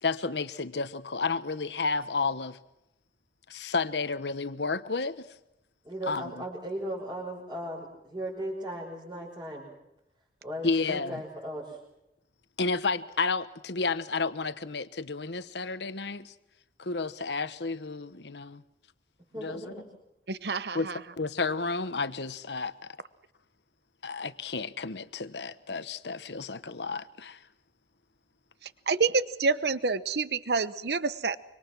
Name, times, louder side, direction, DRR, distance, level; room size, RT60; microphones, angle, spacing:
voice 1, 0.0-2.6 3.5-5.3 6.1-6.3 10.6-11.2 12.6-16.3 16.8-18.6 19.4-19.7 20.7-20.9 21.2-23.0 24.0-27.4, left 4 dB, 80° left, 1.1 m, -31 dB
voice 2, 5.8-9.7 10.4-11.8 19.3-19.8, right 1 dB, 25° right, 5.4 m, -37 dB
voice 3, 20.3-21.0 28.9-31.4, right 4 dB, 70° right, 0.9 m, -28 dB
25.5 x 25.0 x 6.1 m
head